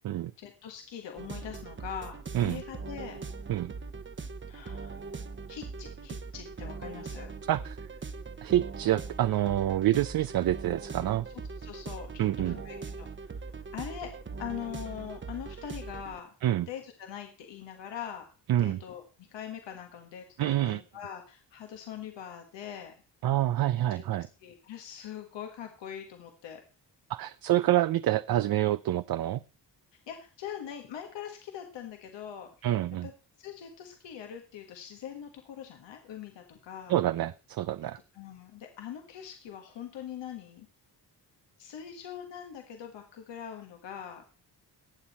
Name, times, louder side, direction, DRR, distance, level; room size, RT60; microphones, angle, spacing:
voice 1, 0.1-3.2 4.5-5.0 5.5-7.3 11.0-11.1 11.6-16.3 16.7-18.3 18.6-19.0 19.3-23.0 23.8-24.0 24.4-26.6 30.1-32.7 33.0-33.1 33.4-37.0 38.1-40.7 41.6-44.3, left 9 dB, 85° left, 3 dB, 1.6 m, -42 dB
sound 1, 1.2-16.2, right 4 dB, 25° right, 1.0 m, -41 dB
voice 2, 8.4-11.2 12.2-12.6 16.4-16.7 18.5-18.8 20.4-20.8 23.2-24.3 27.1-29.4 32.6-33.1 36.9-38.0, right 13 dB, 60° right, 14 dB, 0.6 m, -27 dB
19.0 x 7.3 x 4.2 m, 0.35 s
cardioid pair, 85°, 42 cm